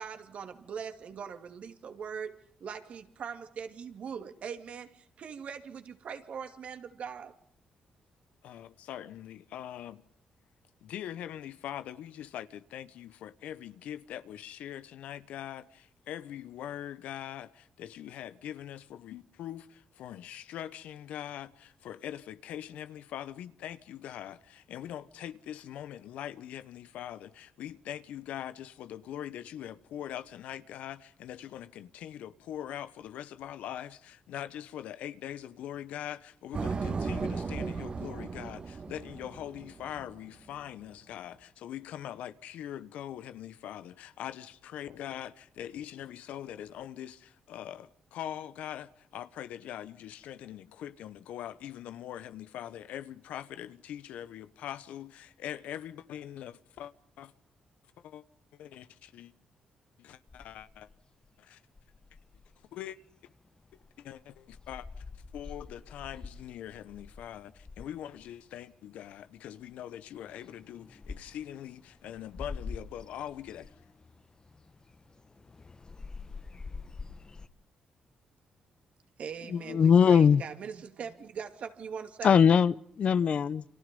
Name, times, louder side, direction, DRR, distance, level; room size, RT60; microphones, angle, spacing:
voice 1, 0.0-7.3 79.2-82.4, right 7 dB, 65° right, 2.7 m, -41 dB
voice 2, 8.4-10.0 10.8-56.9 57.2-57.3 58.0-58.2 58.5-59.3 60.0-60.9 61.4-61.6 62.7-63.0 64.0-65.0 65.3-73.7, left 11 dB, 80° left, 1.2 m, -42 dB
sound 1, 36.5-40.3, right 4 dB, 50° right, 2.3 m, -35 dB
sound 2, 60.3-61.3 61.8-62.8 63.2-68.8 69.1-69.2 69.4-77.5, left 4 dB, 35° left, 1.3 m, -46 dB
voice 3, 79.5-80.4 82.2-83.6, left 7 dB, 60° left, 0.9 m, -21 dB
29.5 x 26.5 x 5.4 m
supercardioid pair, 55°, 2 cm